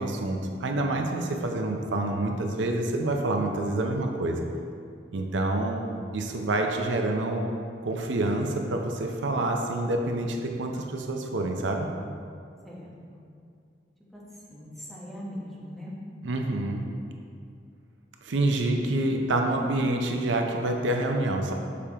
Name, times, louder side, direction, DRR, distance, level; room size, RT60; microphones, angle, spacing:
voice 1, 0.0-4.4 5.1-5.8 6.1-7.5 7.8-11.9 16.2-16.9 18.2-21.5, right 2 dB, 90° right, 3 dB, 0.6 m, -27 dB
voice 2, 12.6-13.2 14.1-14.2 14.5-15.9 18.6-18.8 19.4-19.7, left 1 dB, ahead, -6 dB, 1.0 m, -40 dB
6.8 x 4.9 x 2.9 m, 2.3 s
head